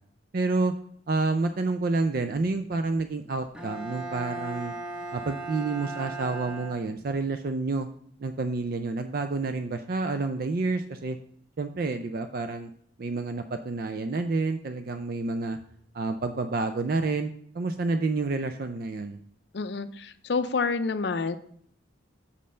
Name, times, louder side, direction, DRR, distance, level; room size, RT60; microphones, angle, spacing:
voice 1, 0.3-0.7 1.1-4.7 5.1-7.9 8.2-11.2 11.6-12.7 13.0-15.6 15.9-17.3 17.5-19.2, right 3 dB, 50° right, 8 dB, 0.4 m, -29 dB
Bowed string instrument, 3.5-7.3, right 3 dB, 5° right, 0.9 m, -37 dB
voice 2, 19.5-21.4, left 4 dB, 60° left, 12 dB, 0.5 m, -28 dB
6.6 x 5.3 x 5.5 m, 0.62 s
head